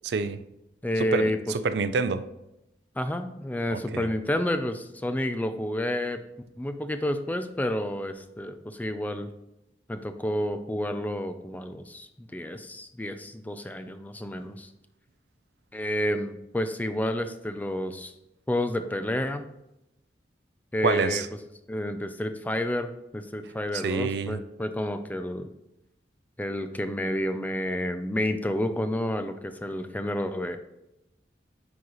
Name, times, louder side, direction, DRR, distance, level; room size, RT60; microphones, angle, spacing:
voice 1, 0.0-0.4 1.0-2.3 3.7-4.1 20.8-21.3 23.7-24.4, right 4 dB, 70° right, 12 dB, 0.4 m, -27 dB
voice 2, 0.8-1.4 3.0-6.2 6.6-9.3 9.9-14.7 15.7-18.1 18.5-19.5 20.7-21.2 21.7-25.5 26.4-30.6, left 1 dB, 10° left, 8 dB, 0.4 m, -30 dB
9.5 x 4.0 x 3.0 m, 0.87 s
head